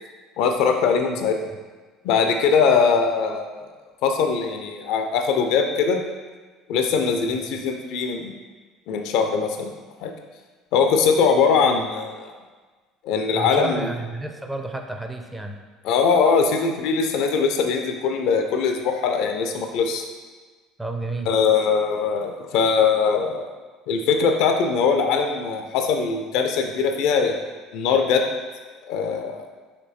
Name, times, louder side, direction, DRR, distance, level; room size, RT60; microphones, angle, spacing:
voice 1, 0.4-1.4 2.0-3.7 4.0-6.0 6.7-8.3 8.9-9.7 10.0-10.1 10.7-12.3 13.0-13.9 15.8-20.0 21.3-23.5 23.9-27.4 27.7-28.2 28.9-29.4, left 5 dB, 55° left, 4 dB, 0.4 m, -21 dB
voice 2, 13.3-15.5 20.8-21.3, right 2 dB, 10° right, 4 dB, 0.4 m, -31 dB
5.0 x 3.1 x 2.7 m, 1.4 s
figure-of-eight pair, 60°, 0 cm